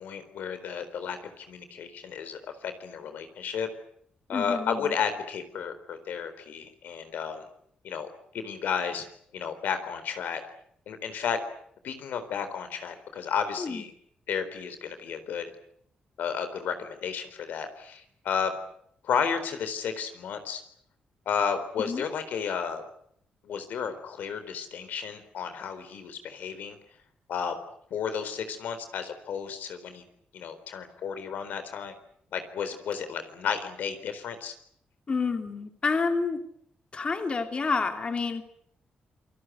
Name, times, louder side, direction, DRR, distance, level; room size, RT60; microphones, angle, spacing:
voice 1, 0.0-3.7 4.3-7.4 7.8-8.1 8.3-9.1 9.3-10.4 10.9-11.4 11.8-13.9 14.3-15.4 16.2-18.6 19.0-20.6 21.3-22.8 23.4-26.8 27.3-27.6 27.9-30.0 30.3-31.9 32.3-34.5, left 7 dB, 80° left, 9 dB, 4.1 m, -32 dB
voice 2, 4.3-4.9 13.6-13.8 21.9-22.0 35.1-36.4 36.9-38.4, left 4 dB, 35° left, 6 dB, 3.0 m, -29 dB
28.0 x 19.5 x 9.4 m, 0.68 s
cardioid pair, 100°, 3 cm